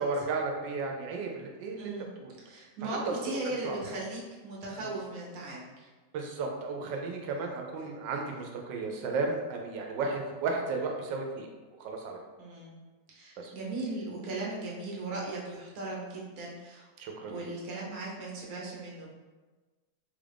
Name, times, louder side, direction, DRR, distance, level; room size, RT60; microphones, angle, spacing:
voice 1, 0.0-1.9 2.2-2.3 2.8-3.1 3.4-3.8 4.8-4.9 6.1-11.5 11.8-12.2 13.4-13.5 17.0-17.5, right 3 dB, 75° right, 2 dB, 1.2 m, -34 dB
voice 2, 1.8-2.1 2.4-5.9 12.4-12.7 13.1-16.9 17.3-19.1, right 2 dB, 55° right, -4 dB, 1.2 m, -38 dB
3.6 x 2.5 x 3.3 m, 1.3 s
omnidirectional pair, 2.0 m